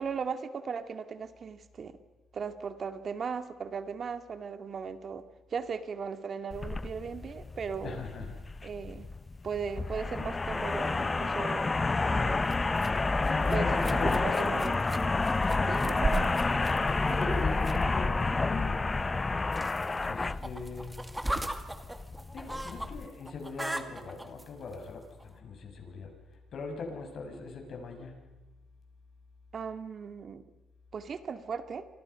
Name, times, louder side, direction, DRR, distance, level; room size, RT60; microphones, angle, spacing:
voice 1, 0.0-2.0 2.3-5.2 5.5-8.0 8.6-9.1 9.4-11.8 12.1-12.6 13.5-14.8 15.7-16.3 16.5-16.8 17.1-17.2 29.5-30.4 30.9-31.9, right 6 dB, 50° right, 9 dB, 2.1 m, -37 dB
sound 1, 6.5-23.1, left 3 dB, 25° left, 0.8 m, -30 dB
voice 2, 7.8-8.7 13.2-14.7 15.5-15.9 16.7-18.9 19.7-21.0 22.3-26.1 26.5-28.3, left 4 dB, 60° left, 3 dB, 6.6 m, -40 dB
sound 2, 12.4-19.4, right 3 dB, 25° right, 1.2 m, -39 dB
sound 3, 19.5-22.9 23.2-24.4 25.2-25.3, right 1 dB, 10° right, 2.3 m, -36 dB
29.0 x 25.5 x 5.7 m, 1.2 s
cardioid pair, 90°, 0 cm